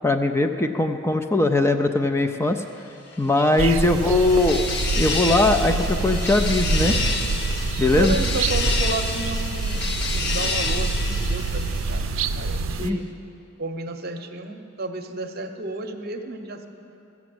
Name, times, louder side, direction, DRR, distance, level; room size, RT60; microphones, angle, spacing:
voice 1, 0.0-2.6 3.2-4.6 5.0-7.0 7.8-8.2 12.8-13.0, left 2 dB, 15° left, 6 dB, 0.4 m, -20 dB
sound 1, 3.2-12.4, left 3 dB, 60° left, 0.9 m, -30 dB
voice 2, 3.5-4.0 7.9-13.1 13.6-16.7, right 2 dB, 50° right, 6 dB, 0.8 m, -32 dB
sound 2, 3.6-12.9, right 3 dB, 75° right, 0.4 m, -26 dB
14.5 x 7.2 x 7.8 m, 2.8 s
head